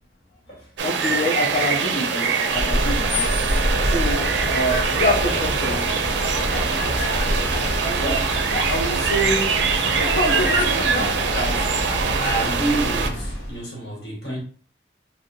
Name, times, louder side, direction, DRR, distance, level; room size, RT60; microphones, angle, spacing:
voice 1, 0.8-3.3 3.8-5.9, left 1 dB, 45° left, -4 dB, 0.6 m, -26 dB
sound 1, 0.8-13.1, right 5 dB, 85° right, 0.4 m, -24 dB
sound 2, 2.5-13.6, left 1 dB, 90° left, 0.8 m, -26 dB
voice 2, 7.8-9.7 11.3-14.4, right 2 dB, 65° left, -2 dB, 1.0 m, -28 dB
2.7 x 2.0 x 3.7 m, 0.43 s
head